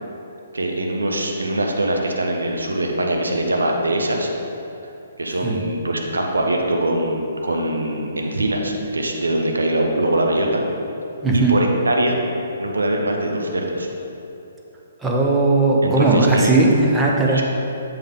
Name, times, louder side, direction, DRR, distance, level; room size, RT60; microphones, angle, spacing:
voice 1, 0.5-4.3 5.2-10.6 11.3-12.2 12.6-13.9 15.8-16.6 17.3-17.4, right 1 dB, 70° right, 1 dB, 0.8 m, -22 dB
voice 2, 11.2-11.6 15.0-17.4, right 2 dB, 10° right, -3 dB, 0.8 m, -17 dB
7.1 x 5.3 x 3.6 m, 2.9 s
figure-of-eight pair, 130°, 0 cm